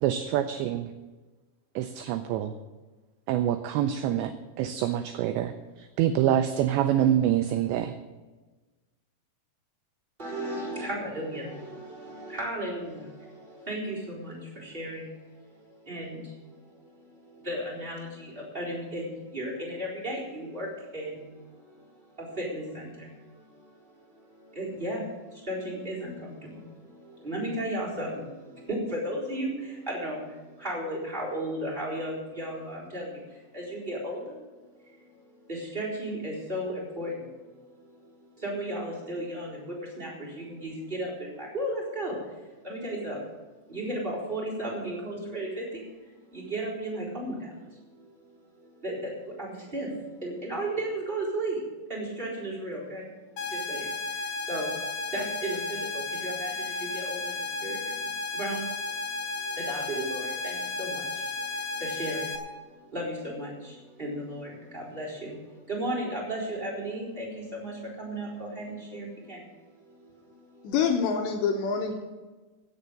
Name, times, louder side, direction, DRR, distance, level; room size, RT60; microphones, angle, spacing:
voice 1, 0.0-0.9 1.8-2.5 3.3-8.0, right 11 dB, 85° right, 9 dB, 2.5 m, -26 dB
voice 2, 10.2-43.3 43.7-51.6 51.9-53.1 53.4-70.7, right 1 dB, 10° right, -5 dB, 3.4 m, -36 dB
sound 1, 53.4-62.4, left 3 dB, 55° left, 2.1 m, -33 dB
voice 3, 70.6-71.9, left 6 dB, 75° left, 3 dB, 2.9 m, -26 dB
16.0 x 7.2 x 6.7 m, 1.2 s
omnidirectional pair, 5.7 m